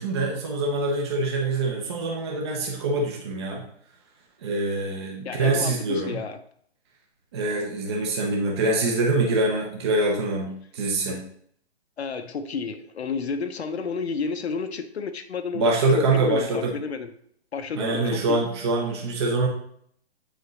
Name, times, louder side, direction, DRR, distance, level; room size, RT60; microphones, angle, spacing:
voice 1, 0.0-3.6 4.4-6.2 7.3-11.2 15.5-16.7 17.7-19.5, right 2 dB, 25° right, -1 dB, 0.7 m, -24 dB
voice 2, 5.2-6.4 12.0-17.1 17.5-18.4, left 5 dB, 75° left, 7 dB, 0.7 m, -31 dB
7.9 x 5.0 x 3.1 m, 0.66 s
hypercardioid pair, 160°, 33 cm